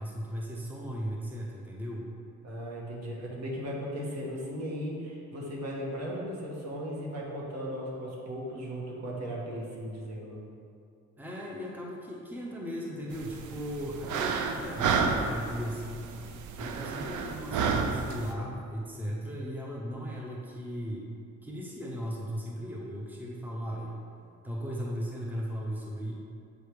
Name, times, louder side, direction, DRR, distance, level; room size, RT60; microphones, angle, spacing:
voice 1, 0.0-2.1 11.2-16.1 16.6-21.1 21.4-24.0 24.4-26.1, equal, 5° right, -3 dB, 0.9 m, -37 dB
voice 2, 2.4-10.4, equal, 60° right, -3 dB, 1.5 m, -37 dB
sound 1, 13.1-18.3, right 5 dB, 85° right, 0.6 m, -31 dB
7.7 x 3.3 x 4.7 m, 2.5 s
cardioid pair, 90°, 30 cm